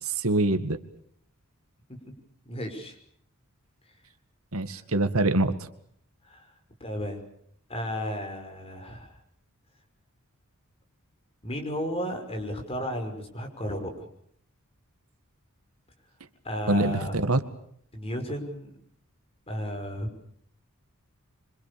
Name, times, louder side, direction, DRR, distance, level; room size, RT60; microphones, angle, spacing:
voice 1, 0.0-0.8 4.5-5.7 16.7-17.4, right 2 dB, 75° right, 10 dB, 2.0 m, -24 dB
voice 2, 2.4-3.0 4.7-4.8 6.3-6.5 6.8-7.2 7.7-9.2 11.4-14.1 16.4-17.1 17.9-18.7 19.5-20.3, equal, 25° left, 4 dB, 5.8 m, -34 dB
26.0 x 25.5 x 7.0 m, 0.67 s
head